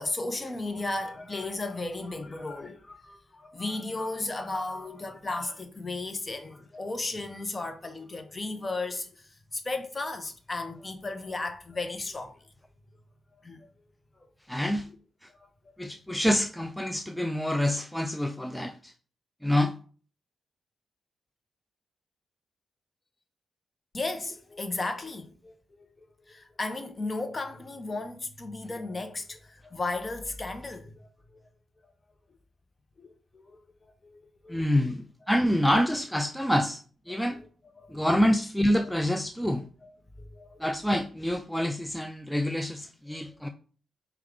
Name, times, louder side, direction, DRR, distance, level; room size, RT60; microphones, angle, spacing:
voice 1, 0.0-12.5 13.3-13.7 15.3-15.8 23.9-31.4 31.8-31.9 33.0-34.8 37.1-37.4 37.8-38.1 38.8-38.9 39.8-39.9 40.2-40.6, left 2 dB, 30° left, 0.7 m, -35 dB
voice 2, 14.5-14.9 15.2-15.3 15.8-18.9 19.4-19.8 34.5-37.4 37.9-39.6 40.6-43.5, equal, 5° left, 0.3 m, -27 dB
4.6 x 2.3 x 3.7 m
cardioid pair, 65°, 0 cm